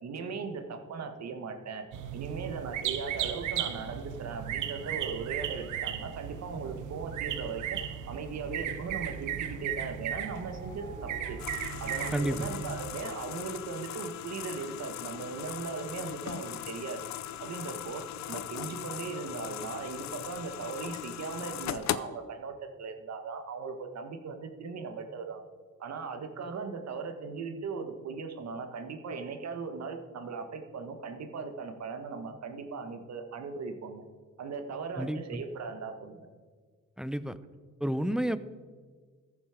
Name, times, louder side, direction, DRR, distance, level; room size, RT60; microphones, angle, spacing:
voice 1, 0.0-1.8 2.1-7.8 8.1-11.4 11.8-17.1 17.4-25.5 25.8-34.0 34.4-36.3, right 5 dB, 60° right, 6 dB, 1.5 m, -38 dB
sound 1, 1.9-13.0, right 10 dB, 85° right, 0.9 m, -36 dB
sound 2, 9.8-13.8, left 1 dB, 25° left, 2.7 m, -52 dB
sound 3, 11.4-22.0, left 12 dB, 65° left, 0.6 m, -39 dB
voice 2, 12.1-12.5 35.0-35.4 37.0-37.4 37.8-38.4, equal, ahead, 14 dB, 0.5 m, -30 dB
14.0 x 7.4 x 5.0 m, 1.5 s
cardioid pair, 90°, 30 cm